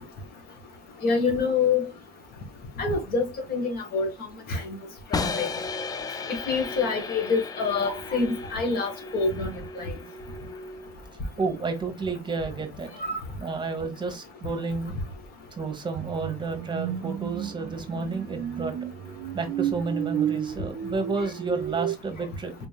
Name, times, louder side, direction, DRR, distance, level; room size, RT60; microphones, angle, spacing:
voice 1, 1.0-1.8 2.8-4.1 4.5-4.6 5.1-5.5 6.5-9.9 13.0-13.1, left 4 dB, 65° left, 1.7 m, -26 dB
sound 1, 5.1-11.1, left 3 dB, 20° left, 0.4 m, -35 dB
voice 2, 11.4-12.9 13.4-14.9 15.6-18.7 19.3-22.5, right 4 dB, 25° right, 1.1 m, -31 dB
sound 2, 16.0-22.0, right 10 dB, 65° right, 0.4 m, -32 dB
4.1 x 3.5 x 2.3 m
cardioid pair, 110°, 17 cm